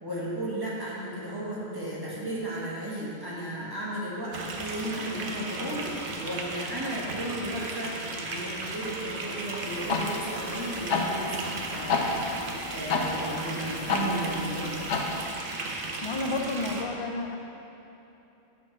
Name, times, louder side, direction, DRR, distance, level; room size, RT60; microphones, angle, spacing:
voice 1, 0.0-7.9 8.2-12.2 12.7-14.8, right 1 dB, 20° right, -7 dB, 1.6 m, -34 dB
sound 1, 4.3-16.8, right 3 dB, 55° right, 0.8 m, -36 dB
sound 2, 9.6-15.3, left 4 dB, 90° left, 1.0 m, -31 dB
voice 2, 16.0-17.4, left 2 dB, 40° left, 2 dB, 0.5 m, -31 dB
8.5 x 3.9 x 6.2 m, 3.0 s
omnidirectional pair, 1.2 m